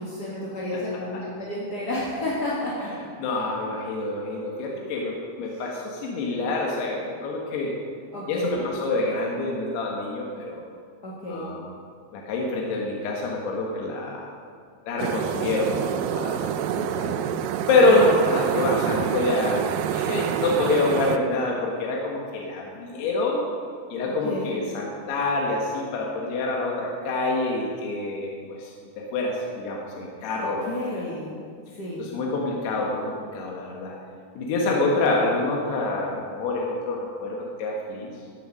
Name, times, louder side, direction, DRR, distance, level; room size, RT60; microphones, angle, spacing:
voice 1, 0.0-2.9 5.5-5.6 8.1-8.7 11.0-11.5 16.8-17.2 24.0-24.6 30.4-31.3 31.8-32.1, left 1 dB, 45° left, -5 dB, 1.2 m, -31 dB
voice 2, 3.2-7.7 8.3-10.6 11.3-11.6 12.1-14.3 14.9-16.5 17.7-23.4 23.9-28.7 29.1-30.7 32.0-33.9 34.4-38.1, left 2 dB, 85° left, -2 dB, 3.5 m, -26 dB
sound 1, 15.0-21.2, right 10 dB, 90° right, 1.9 m, -27 dB
16.0 x 8.0 x 6.4 m, 2.2 s
omnidirectional pair, 4.6 m